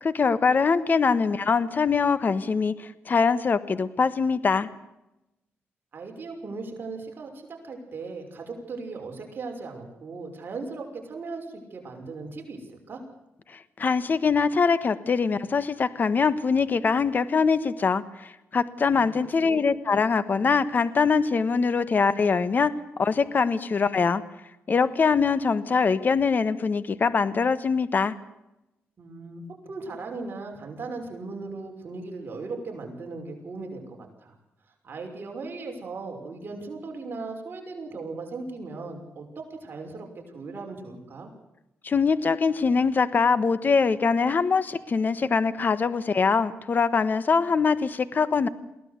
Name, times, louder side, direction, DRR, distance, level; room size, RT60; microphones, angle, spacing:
voice 1, 0.0-4.7 13.8-22.7 23.0-24.2 24.7-28.1 41.8-48.5, left 5 dB, 45° left, 14 dB, 1.3 m, -23 dB
voice 2, 5.9-13.0 18.8-19.1 19.4-19.6 29.0-34.3 34.8-41.3, right 3 dB, 50° right, 2 dB, 6.0 m, -38 dB
23.0 x 17.0 x 8.2 m, 0.90 s
cardioid pair, 100°, 4 cm